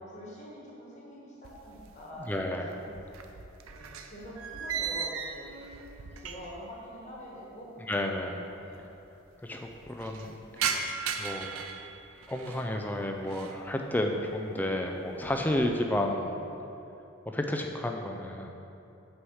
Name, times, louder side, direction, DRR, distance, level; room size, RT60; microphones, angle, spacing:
voice 1, 0.0-2.8 3.1-3.2 3.6-5.5 6.2-8.9, equal, 35° left, -5 dB, 1.5 m, -45 dB
sound 1, 1.4-2.3 2.6-6.7 7.0-7.1 7.9-8.0 8.2-8.3 8.6-9.1 9.5-12.7 13.1-13.6 14.1-14.5 14.9-15.8, right 6 dB, 80° right, 0.5 m, -37 dB
voice 2, 2.2-2.7 7.9-8.5 9.4-10.8 11.2-11.5 12.3-16.4 17.3-18.5, left 1 dB, 10° left, 3 dB, 0.4 m, -31 dB
6.3 x 4.7 x 6.4 m, 2.8 s
head